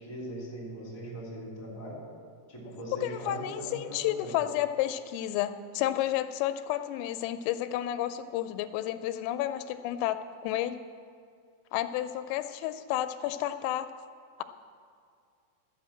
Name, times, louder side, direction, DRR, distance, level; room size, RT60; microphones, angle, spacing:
voice 1, 0.0-2.1 2.5-4.4, right 1 dB, 10° left, -5 dB, 2.4 m, -40 dB
voice 2, 3.0-10.8 11.7-13.9, left 12 dB, 85° left, 11 dB, 3.2 m, -31 dB
13.0 x 7.7 x 7.5 m, 2.3 s
omnidirectional pair, 5.9 m